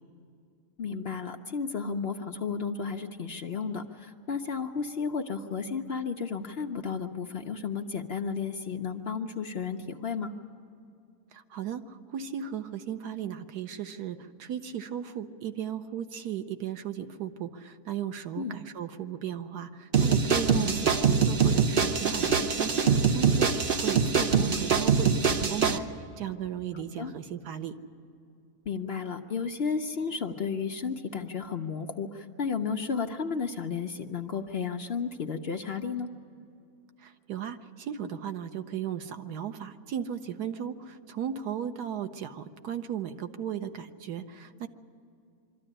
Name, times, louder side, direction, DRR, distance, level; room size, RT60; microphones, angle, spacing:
voice 1, 0.8-10.3 18.4-18.6 20.5-20.7 26.7-27.1 28.7-36.1, left 5 dB, 55° left, 5 dB, 0.8 m, -33 dB
voice 2, 11.3-25.9 26.2-27.7 37.0-44.7, right 9 dB, 85° right, 8 dB, 1.4 m, -36 dB
sound 1, 19.9-25.8, right 6 dB, 45° right, 0.8 m, -24 dB
23.5 x 13.5 x 10.0 m, 2.5 s
omnidirectional pair, 1.6 m